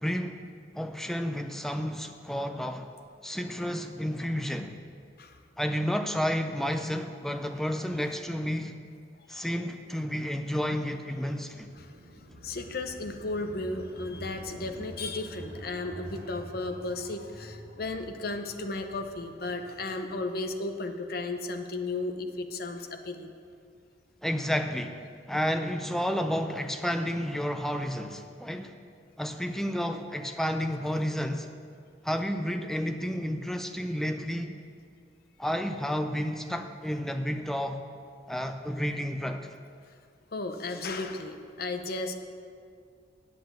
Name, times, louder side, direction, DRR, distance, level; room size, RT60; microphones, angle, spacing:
voice 1, 0.0-0.4 0.7-2.9 3.2-4.8 5.6-8.8 9.3-11.7 24.2-28.7 29.2-31.5 32.0-34.6 35.4-37.8 38.3-39.5, equal, ahead, 6 dB, 0.4 m, -31 dB
sound 1, 11.5-20.3, equal, 65° right, 2.2 m, -47 dB
voice 2, 12.4-23.3 40.3-42.2, left 2 dB, 50° left, 6 dB, 0.7 m, -34 dB
8.6 x 8.0 x 6.5 m, 2.2 s
head